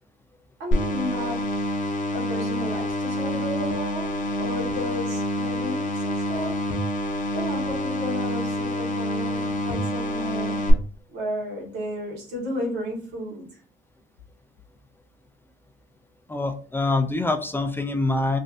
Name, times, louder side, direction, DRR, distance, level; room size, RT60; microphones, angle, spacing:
voice 1, 0.6-1.5 2.1-6.7 7.3-10.6 11.1-13.5, left 1 dB, 85° right, 1.5 m, -33 dB
sound 1, 0.7-10.7, left 1 dB, 50° left, 0.7 m, -27 dB
voice 2, 16.3-18.4, left 2 dB, 15° left, 0.3 m, -25 dB
3.2 x 2.6 x 2.4 m
cardioid pair, 110°, 17 cm